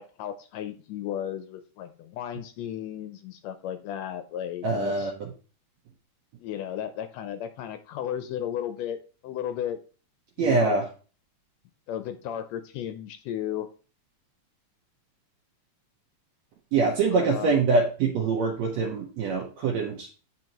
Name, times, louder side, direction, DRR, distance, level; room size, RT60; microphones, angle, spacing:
voice 1, 0.0-5.1 6.4-9.0 9.2-9.8 10.4-10.8 11.9-13.7 17.1-17.5, left 10 dB, 80° left, 10 dB, 1.6 m, -34 dB
voice 2, 4.6-5.3 10.4-10.9 16.7-20.1, right 4 dB, 70° right, -1 dB, 2.0 m, -24 dB
9.9 x 4.0 x 2.9 m, 0.36 s
omnidirectional pair, 3.4 m